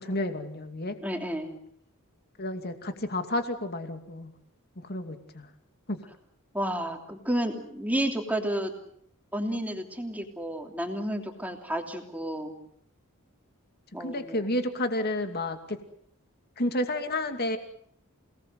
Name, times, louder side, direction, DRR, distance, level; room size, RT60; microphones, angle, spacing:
voice 1, 0.0-1.0 2.4-4.3 4.9-5.5 5.9-6.0 14.0-15.8 16.6-17.6, left 1 dB, 45° left, 7 dB, 2.5 m, -31 dB
voice 2, 1.0-1.6 6.5-8.7 9.3-12.5 13.9-14.4, right 1 dB, 5° right, 3 dB, 3.1 m, -31 dB
28.5 x 19.0 x 7.7 m, 0.68 s
head